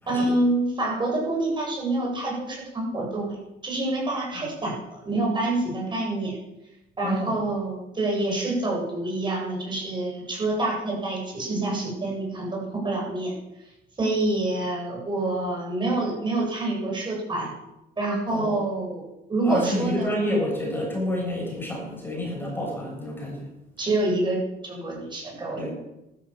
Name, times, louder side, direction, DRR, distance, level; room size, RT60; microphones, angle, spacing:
voice 1, 0.1-3.4 3.6-4.7 5.0-6.4 7.0-13.3 14.0-17.5 18.0-20.1 23.8-25.7, right 2 dB, 25° right, -2 dB, 8.0 m, -27 dB
voice 2, 7.0-7.4 18.3-18.6 19.4-23.5 25.5-25.7, left 1 dB, 10° left, -2 dB, 7.0 m, -29 dB
14.0 x 13.5 x 7.5 m, 0.92 s
cardioid pair, 110°, 17 cm